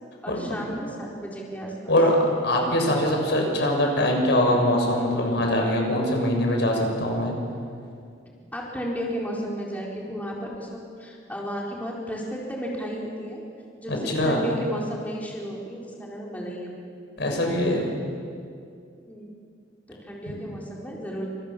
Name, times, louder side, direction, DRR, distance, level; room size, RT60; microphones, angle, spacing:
voice 1, 0.2-2.0 8.5-13.4 13.8-16.7 19.1-19.3 19.9-21.3, equal, 10° left, -3 dB, 4.2 m, -33 dB
voice 2, 1.9-7.4 13.9-14.4 17.2-17.9, left 1 dB, 65° left, 1 dB, 7.0 m, -22 dB
28.0 x 27.5 x 7.5 m, 2.3 s
head